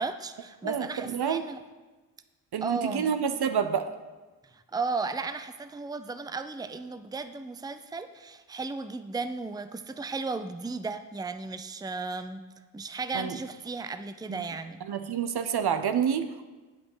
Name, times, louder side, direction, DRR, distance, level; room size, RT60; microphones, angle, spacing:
voice 1, 0.0-1.6 2.6-3.1 4.5-12.4 12.7-14.8, right 4 dB, 10° right, 10 dB, 0.6 m, -35 dB
voice 2, 0.6-1.4 2.5-3.9 13.1-13.4 14.3-14.4 14.9-16.4, right 7 dB, 60° right, 9 dB, 0.8 m, -28 dB
8.6 x 5.1 x 7.3 m, 1.2 s
supercardioid pair, 40°, 43 cm